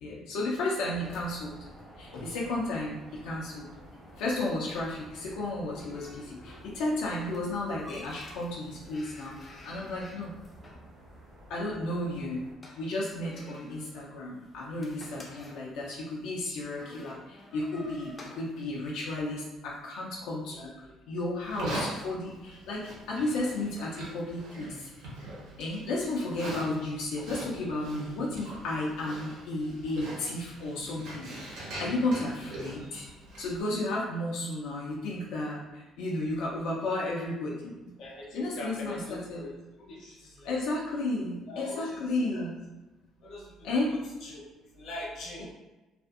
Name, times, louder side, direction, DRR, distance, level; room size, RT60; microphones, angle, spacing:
voice 1, 0.0-1.5 2.0-3.0 3.2-3.7 4.2-9.3 9.6-10.4 11.5-12.4 12.8-17.2 17.5-20.7 21.1-22.8 23.1-24.8 25.6-31.3 31.8-33.0 33.4-35.6 36.0-37.9 38.3-39.5 40.5-42.5 43.6-43.9, left 2 dB, 90° left, -4 dB, 0.5 m, -33 dB
sound 1, 0.9-12.5, equal, 45° right, 0.7 m, -52 dB
sound 2, 2.8-19.9, left 1 dB, 15° left, 0.3 m, -53 dB
Livestock farm animals working animals, 21.4-33.6, right 1 dB, 90° right, 1.0 m, -42 dB
voice 2, 38.0-39.5 39.8-40.6 41.5-42.4 43.2-44.4 44.7-45.4, left 1 dB, 50° left, -3 dB, 0.7 m, -42 dB
2.5 x 2.4 x 2.4 m, 1.1 s
cardioid pair, 175°, 0 cm